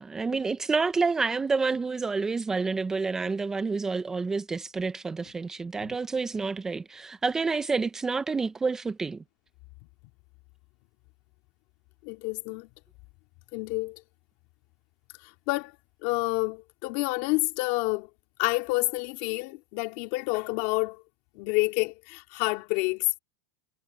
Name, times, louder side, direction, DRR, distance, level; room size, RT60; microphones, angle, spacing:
voice 1, 0.0-9.2, right 4 dB, 10° right, 0.6 m, -28 dB
voice 2, 12.0-12.7 13.5-14.0 15.5-15.7 16.0-18.1 18.4-21.0 21.4-23.2, left 24 dB, 50° left, 2.7 m, -28 dB
supercardioid pair, 155°, 5 cm